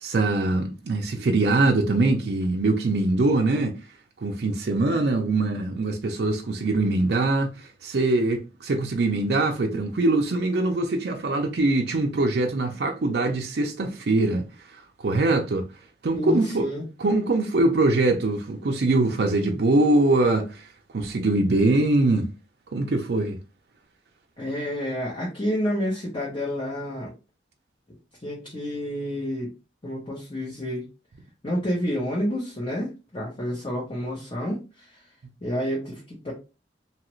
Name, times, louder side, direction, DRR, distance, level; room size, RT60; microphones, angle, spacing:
voice 1, 0.0-3.8 4.2-14.5 14.7-15.7 16.0-16.7 17.0-22.3 22.7-23.4, right 2 dB, 60° right, 0.4 m, -23 dB
voice 2, 16.1-16.9 24.4-27.1 28.2-29.5 29.8-30.8 31.4-35.0 35.4-36.3, equal, 30° left, 0.8 m, -29 dB
2.9 x 2.4 x 3.0 m
head